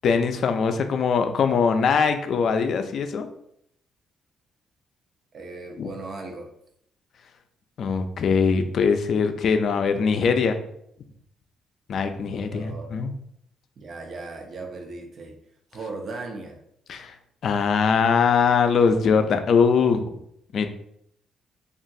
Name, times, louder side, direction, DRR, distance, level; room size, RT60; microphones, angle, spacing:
voice 1, 0.0-3.3 5.8-5.9 7.8-10.6 11.9-13.1 16.9-17.1 17.4-20.2 20.5-20.7, left 5 dB, 60° left, 7 dB, 0.3 m, -22 dB
voice 2, 5.3-6.5 12.5-13.0 13.8-15.3 15.7-16.6, right 3 dB, 55° right, 2 dB, 0.6 m, -37 dB
2.9 x 2.4 x 2.6 m, 0.71 s
cardioid pair, 90°, 0 cm